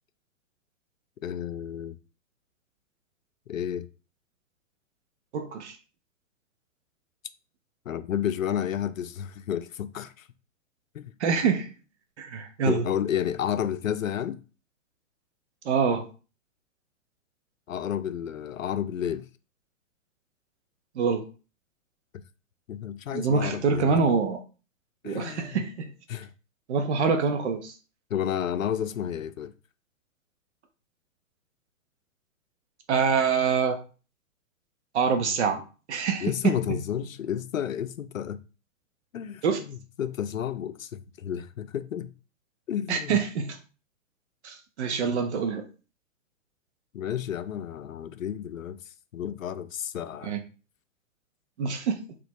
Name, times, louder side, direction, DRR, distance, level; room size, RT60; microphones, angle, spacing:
voice 1, 1.2-2.0 3.5-3.9 7.9-10.3 10.9-11.1 12.6-14.4 17.7-19.3 22.7-23.9 25.0-25.6 26.1-26.3 28.1-29.5 36.2-38.4 39.1-42.1 42.7-43.2 46.9-48.8 49.1-50.4, left 9 dB, 75° left, 0.5 m, -31 dB
voice 2, 5.3-5.8 11.2-11.7 12.2-12.8 15.6-16.1 20.9-21.2 23.1-24.4 25.0-25.9 26.7-27.7 32.9-33.8 34.9-36.8 39.4-39.6 42.9-43.6 44.4-45.6 50.2-50.4 51.6-52.0, right 5 dB, 55° right, 1.0 m, -25 dB
4.2 x 3.0 x 2.9 m
figure-of-eight pair, 110°, 40 cm